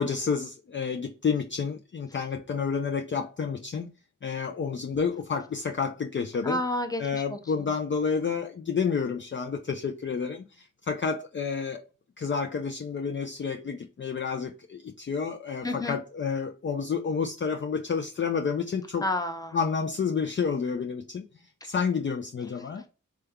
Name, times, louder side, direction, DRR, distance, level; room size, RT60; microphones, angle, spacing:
voice 1, 0.0-3.9 4.2-6.6 7.0-11.9 12.2-19.1 19.5-21.2 21.6-22.9, left 5 dB, 40° left, 0.4 m, -30 dB
voice 2, 6.4-7.4 15.6-16.0 19.0-19.6, left 1 dB, 10° left, 0.7 m, -30 dB
3.3 x 2.2 x 3.5 m
cardioid pair, 45°, 32 cm